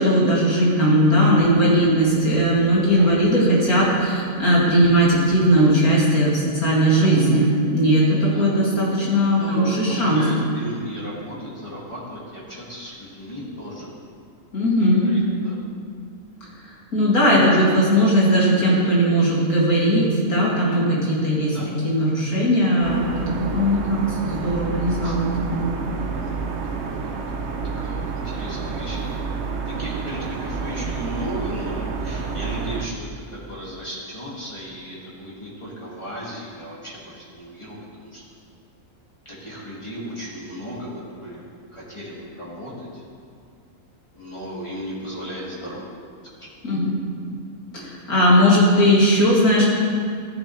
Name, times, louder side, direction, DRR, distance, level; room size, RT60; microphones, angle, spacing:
voice 1, 0.0-10.2 14.5-15.1 16.9-21.6 21.8-25.7 46.6-46.9 47.7-49.7, equal, 80° left, -6 dB, 3.1 m, -18 dB
voice 2, 2.8-3.1 7.0-7.1 8.3-8.5 9.4-13.9 14.9-15.6 17.4-17.7 21.5-21.7 25.0-25.2 26.2-27.2 27.8-29.0 29.7-38.2 39.3-43.0 44.1-45.9 46.3-46.5, equal, 20° left, -7 dB, 2.3 m, -35 dB
sound 1, 22.8-32.9, right 5 dB, 55° right, 1.0 m, -29 dB
14.0 x 10.0 x 3.3 m, 2.3 s
omnidirectional pair, 1.5 m